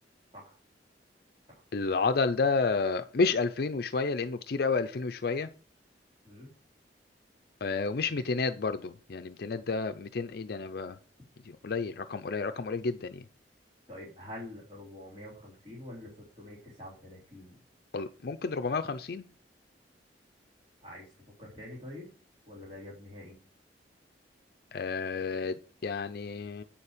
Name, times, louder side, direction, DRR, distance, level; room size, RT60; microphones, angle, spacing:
voice 1, 1.7-5.5 7.6-11.0 11.6-13.2 17.9-19.2 24.7-26.6, left 4 dB, 60° left, 9 dB, 0.5 m, -30 dB
voice 2, 13.9-16.1 16.4-17.5 20.8-21.0 21.4-22.1 22.5-23.3, left 1 dB, 30° right, -4 dB, 3.5 m, -45 dB
8.9 x 7.1 x 5.0 m, 0.39 s
head